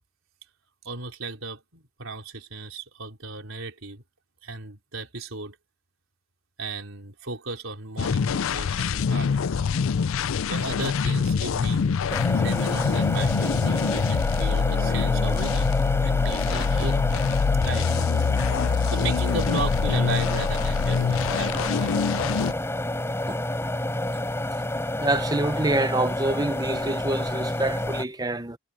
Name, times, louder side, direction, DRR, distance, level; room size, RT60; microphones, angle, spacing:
voice 1, 0.8-4.0 4.4-5.6 6.6-9.3 10.5-11.9 12.3-17.3 17.6-17.9 18.9-21.9, right 3 dB, 65° right, 4.3 m, -35 dB
sound 1, 8.0-22.5, left 5 dB, 70° left, 0.4 m, -25 dB
sound 2, 12.1-28.0, left 1 dB, 10° left, 4.2 m, -29 dB
voice 2, 25.0-28.6, right 2 dB, 20° right, 0.8 m, -26 dB
head